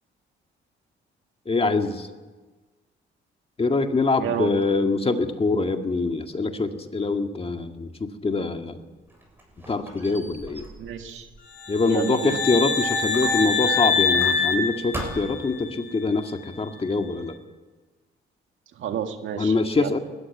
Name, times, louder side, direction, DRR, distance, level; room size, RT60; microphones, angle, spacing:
voice 1, 1.5-2.1 3.6-8.8 9.7-10.6 11.7-17.4 19.4-20.0, left 3 dB, 30° left, 6 dB, 1.9 m, -24 dB
voice 2, 4.2-4.5 10.8-11.3 11.9-12.4 18.8-19.9, right 9 dB, 75° right, 6 dB, 2.0 m, -30 dB
Squeak, 8.8-12.7 13.1-14.6 14.9-15.5, right 1 dB, 10° right, 7.3 m, -40 dB
sound 1, 11.6-15.6, left 5 dB, 55° left, 3.6 m, -24 dB
19.5 x 14.5 x 9.4 m, 1.3 s
cardioid pair, 90°, 20 cm